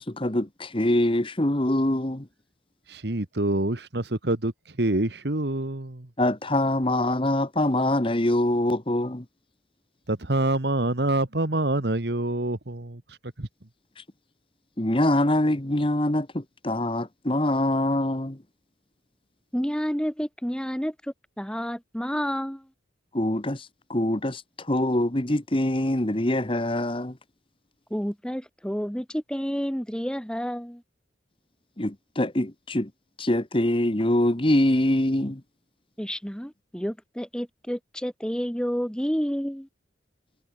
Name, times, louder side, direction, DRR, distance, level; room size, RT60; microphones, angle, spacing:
voice 1, 0.0-2.2 6.2-9.2 14.8-18.4 23.1-24.4 24.7-27.1 31.8-32.9 33.2-35.4, left 1 dB, 25° left, 1.3 m, -24 dB
voice 2, 2.9-4.5 4.8-6.1 10.1-13.0 13.4-13.5, right 1 dB, 60° right, 1.6 m, -26 dB
voice 3, 19.5-20.9 21.4-22.6 27.9-30.8 36.0-39.7, equal, 5° left, 2.0 m, -30 dB
head